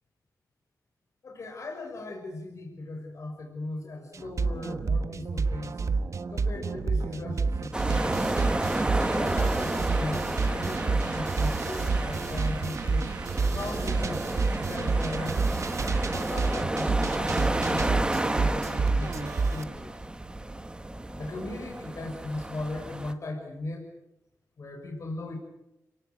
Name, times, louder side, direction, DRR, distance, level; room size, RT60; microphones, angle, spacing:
voice 1, 1.2-5.8 6.3-8.2 9.0-13.1 13.5-14.2 14.7-15.4 15.8-19.9 21.2-23.9 24.6-25.4, left 2 dB, 55° left, 2 dB, 5.6 m, -37 dB
sound 1, 4.1-19.6, right 4 dB, 55° right, 1.3 m, -29 dB
sound 2, 7.7-23.1, right 1 dB, 15° right, 2.0 m, -31 dB
29.5 x 18.5 x 9.2 m, 0.92 s
wide cardioid pair, 120°, 6 cm